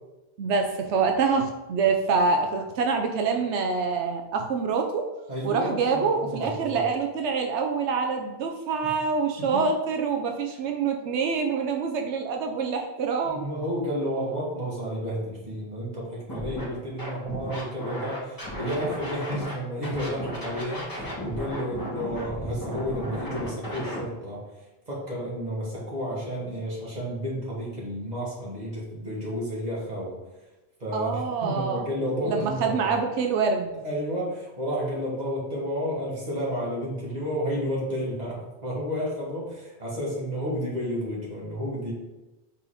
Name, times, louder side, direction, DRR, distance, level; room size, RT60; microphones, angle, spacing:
voice 1, 0.4-5.1 5.4-13.5 30.9-31.8 32.3-33.7, right 5 dB, 90° right, 4 dB, 0.9 m, -26 dB
voice 2, 5.3-6.9 8.8-8.9 9.4-9.6 13.2-24.4 24.9-30.2 30.8-33.0 33.8-41.9, equal, 40° right, -5 dB, 2.1 m, -31 dB
Scratching (performance technique), 16.3-16.6 17.0-19.5 19.8-24.0, equal, 20° left, 1.6 m, -35 dB
5.5 x 4.1 x 4.9 m, 1.1 s
omnidirectional pair, 1.1 m